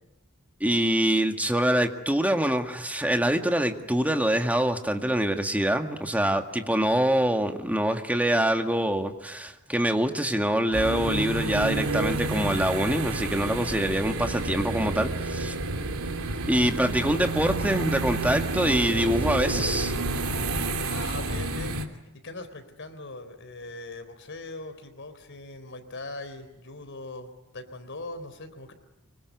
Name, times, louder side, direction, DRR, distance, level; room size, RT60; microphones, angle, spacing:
voice 1, 0.6-15.5 16.5-19.9, right 1 dB, 5° right, 5 dB, 1.9 m, -25 dB
sound 1, 10.7-21.9, right 2 dB, 75° right, 2.8 m, -29 dB
voice 2, 20.8-21.8 22.2-28.7, left 2 dB, 60° left, 9 dB, 3.9 m, -40 dB
25.5 x 24.0 x 9.5 m, 0.93 s
head